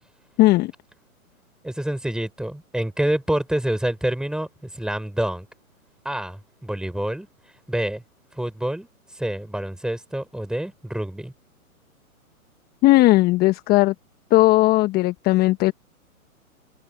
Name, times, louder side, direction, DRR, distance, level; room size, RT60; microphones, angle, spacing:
voice 1, 0.4-0.7 12.8-13.9 14.3-15.7, left 18 dB, 20° left, 1.2 m, -17 dB
voice 2, 1.6-5.5 6.0-7.3 7.7-8.0 8.3-8.9 9.1-11.3, right 1 dB, ahead, 5.0 m, -27 dB
hypercardioid pair, 125°, 43 cm